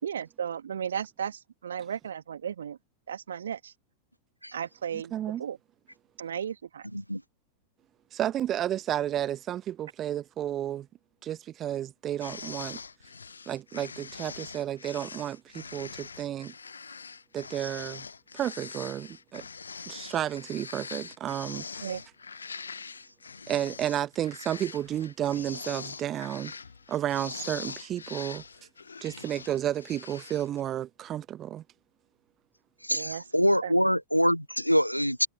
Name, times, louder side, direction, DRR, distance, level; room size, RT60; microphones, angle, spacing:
voice 1, 0.0-2.8 3.1-3.7 4.5-5.1 5.4-5.6 6.2-6.9 21.8-22.0 32.9-33.2 33.6-33.8, right 8 dB, 65° right, 1.9 m, -35 dB
voice 2, 5.1-5.4 8.1-10.9 11.2-12.8 13.5-16.5 17.3-18.1 18.3-19.5 19.9-21.6 23.5-26.6 26.9-28.4 29.0-31.6, right 11 dB, 30° right, 1.0 m, -32 dB
sound 1, 12.2-30.6, left 5 dB, 75° left, 0.7 m, -43 dB
voice 3, 32.8-35.3, equal, 90° left, 0.4 m, -25 dB
figure-of-eight pair, 90°, 0 cm